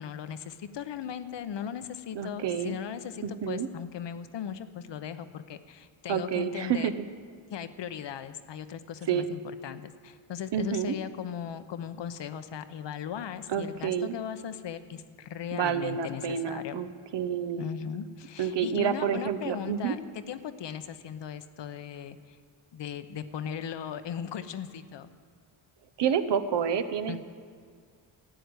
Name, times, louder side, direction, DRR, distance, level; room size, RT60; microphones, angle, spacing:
voice 1, 0.0-6.9 7.5-16.8 17.6-22.4 22.7-25.1 27.1-27.2, left 8 dB, 60° left, 11 dB, 0.9 m, -38 dB
voice 2, 2.1-2.8 3.2-3.7 6.1-6.9 9.1-9.3 10.5-11.0 13.5-14.1 15.5-16.9 17.1-17.7 18.4-19.9 26.0-27.2, right 8 dB, 60° right, 11 dB, 1.0 m, -29 dB
13.0 x 7.8 x 9.6 m, 2.1 s
cardioid pair, 90°, 48 cm